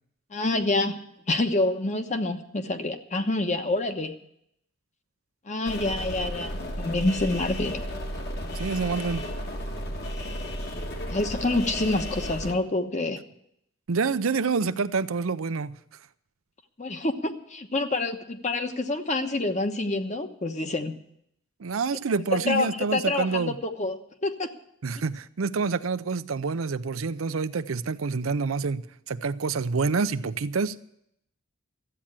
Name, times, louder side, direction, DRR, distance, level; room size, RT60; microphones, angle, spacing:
voice 1, 0.3-1.0 1.3-4.2 5.5-7.8 11.1-13.2 16.8-21.0 22.3-24.5, left 2 dB, 35° left, 1.1 m, -27 dB
sound 1, 5.6-12.5, equal, 50° left, 1.6 m, -33 dB
voice 2, 8.5-9.2 13.9-15.8 21.6-23.6 24.8-30.8, right 4 dB, 85° right, 0.6 m, -27 dB
13.5 x 8.7 x 8.8 m
head